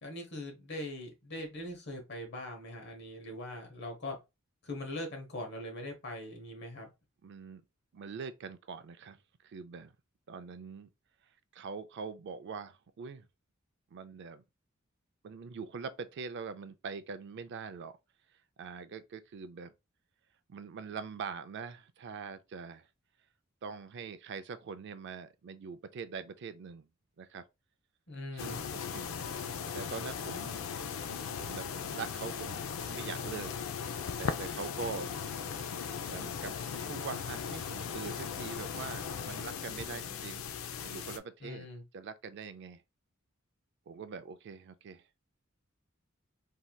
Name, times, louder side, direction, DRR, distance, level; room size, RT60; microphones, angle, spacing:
voice 1, 0.0-4.2 4.6-6.9 28.1-28.6 41.4-41.8, left 1 dB, 55° left, 1.0 m, -41 dB
voice 2, 7.2-7.6 7.9-9.2 9.4-10.0 10.3-10.9 11.5-13.3 13.9-14.4 15.2-18.0 18.6-19.7 20.5-22.9 23.6-26.9 27.2-27.4 28.4-29.1 29.7-30.6 31.3-33.5 34.2-35.1 35.4-35.5 36.0-40.4 40.8-41.7 41.9-42.8 43.9-45.0, right 5 dB, 55° right, 0.4 m, -43 dB
sound 1, 28.4-41.2, left 6 dB, 70° left, 0.4 m, -38 dB
3.2 x 2.7 x 2.2 m
head